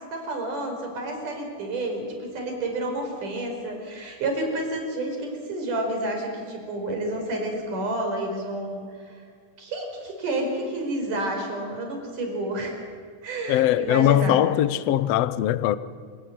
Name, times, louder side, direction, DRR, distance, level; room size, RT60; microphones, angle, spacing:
voice 1, 0.1-9.2 9.6-12.8 13.2-14.4, right 1 dB, 80° right, 6.3 m, -30 dB
voice 2, 13.5-15.8, left 12 dB, 70° left, 1.6 m, -21 dB
28.0 x 18.0 x 9.4 m
omnidirectional pair, 3.6 m